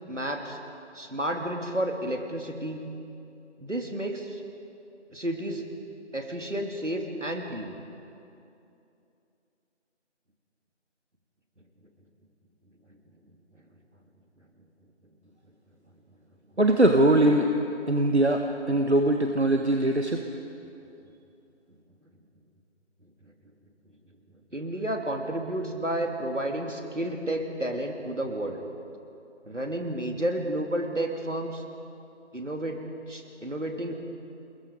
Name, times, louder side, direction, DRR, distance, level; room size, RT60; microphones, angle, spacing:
voice 1, 0.1-0.6 0.9-2.8 3.6-4.4 5.1-5.6 6.1-7.8 24.5-28.6 29.5-31.6 32.3-32.8 33.1-33.9, right 1 dB, 85° right, 3 dB, 3.1 m, -31 dB
voice 2, 16.6-17.6 17.9-20.2, right 1 dB, 65° right, 4 dB, 1.5 m, -21 dB
28.5 x 21.0 x 5.2 m, 2.7 s
figure-of-eight pair, 175°, 36 cm